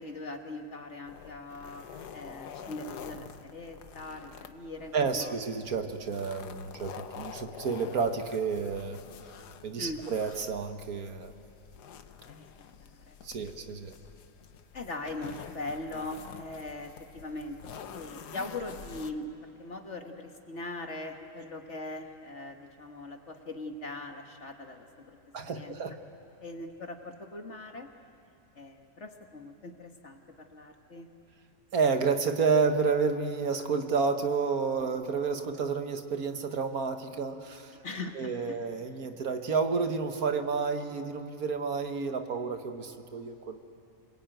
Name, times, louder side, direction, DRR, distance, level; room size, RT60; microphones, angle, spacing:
voice 1, 0.0-1.9 2.1-5.4 9.8-10.0 12.3-12.5 12.9-13.2 14.7-25.2 25.5-25.7 26.4-27.9 28.6-31.1 37.8-38.6, left 2 dB, 45° left, 4 dB, 1.9 m, -41 dB
sound 1, 1.1-19.1, left 7 dB, 75° left, 1.5 m, -47 dB
voice 2, 4.9-9.0 9.6-11.3 13.2-13.9 25.3-26.0 31.7-37.8 38.2-43.6, right 5 dB, 65° right, 7 dB, 1.7 m, -30 dB
28.0 x 22.0 x 9.1 m, 2.8 s
omnidirectional pair, 1.7 m